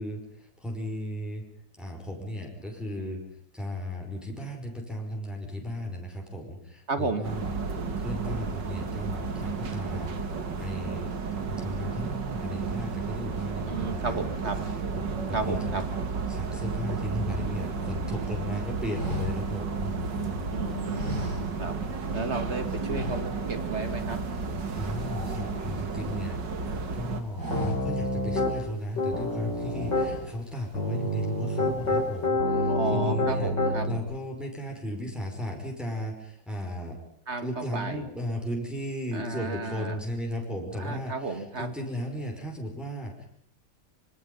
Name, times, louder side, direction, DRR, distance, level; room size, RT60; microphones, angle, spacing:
voice 1, 0.0-1.4 1.8-3.2 3.5-10.1 10.6-11.1 11.6-14.4 15.0-15.8 16.3-20.6 24.8-26.4 26.7-33.5 33.8-37.0 37.4-43.3, left 1 dB, ahead, 0 dB, 5.4 m, -35 dB
voice 2, 6.9-7.2 13.7-14.6 15.3-15.8 20.5-21.8 22.1-24.2 32.7-33.9 37.3-38.1 39.1-40.0 40.8-41.7, right 3 dB, 40° right, 9 dB, 2.5 m, -33 dB
sound 1, 7.2-27.2, right 4 dB, 85° right, 2.7 m, -32 dB
sound 2, 18.9-20.4 20.9-22.0 22.2-22.4 22.8-23.7 24.0-24.2 24.5-26.2 26.7-26.9 27.2-28.2 28.6-28.7 29.5-30.6 31.1-31.4 31.7-32.3, equal, 60° right, 6.4 m, -37 dB
Piano, 27.5-28.6 29.0-30.1 30.7-34.0, left 1 dB, 80° left, 5.1 m, -27 dB
26.0 x 25.0 x 5.5 m, 0.65 s
omnidirectional pair, 1.9 m